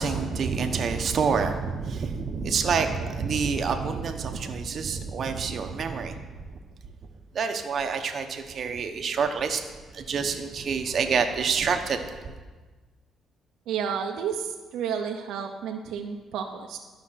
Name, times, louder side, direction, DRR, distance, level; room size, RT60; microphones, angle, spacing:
voice 1, 0.0-6.1 7.3-9.6 9.9-12.3, right 5 dB, 55° right, 5 dB, 1.0 m, -27 dB
voice 2, 13.7-16.8, right 7 dB, 85° right, 3 dB, 0.8 m, -31 dB
12.5 x 5.7 x 5.8 m, 1.3 s
cardioid pair, 90°, 0 cm